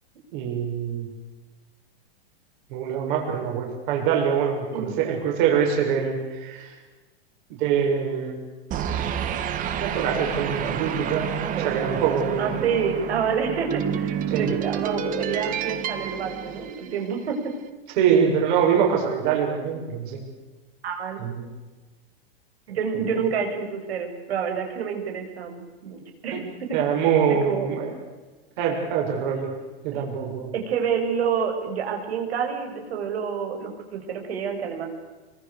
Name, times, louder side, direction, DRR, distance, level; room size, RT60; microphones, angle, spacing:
voice 1, 0.3-1.1 2.7-6.7 7.6-8.4 9.8-11.3 11.6-12.5 14.3-14.5 18.0-20.2 21.2-21.5 26.3-26.4 26.7-27.9 28.6-29.5 29.8-30.5, right 7 dB, 50° right, 1 dB, 7.0 m, -24 dB
sound 1, 8.7-17.3, right 8 dB, 25° right, 1.8 m, -29 dB
voice 2, 11.6-12.0 12.4-17.4 20.8-21.2 22.7-26.8 27.4-27.7 29.9-30.0 30.5-34.9, right 6 dB, 85° right, 4 dB, 7.2 m, -28 dB
27.5 x 25.5 x 6.9 m, 1.2 s
supercardioid pair, 155°, 31 cm